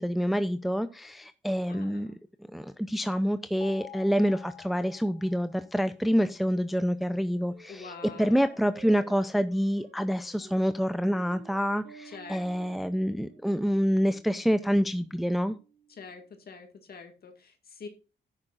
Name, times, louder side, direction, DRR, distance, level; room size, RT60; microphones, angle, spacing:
voice 1, 0.0-2.1 2.5-15.6, equal, ahead, 11 dB, 0.6 m, -27 dB
voice 2, 1.7-2.1 7.7-8.7 12.0-12.5 15.9-17.9, left 5 dB, 60° left, 5 dB, 2.0 m, -46 dB
sound 1, 3.6-5.8, left 13 dB, 35° left, 1.2 m, -49 dB
sound 2, 7.5-16.1, right 5 dB, 75° right, 5.5 m, -54 dB
12.0 x 9.9 x 2.5 m, 0.32 s
cardioid pair, 90°, 18 cm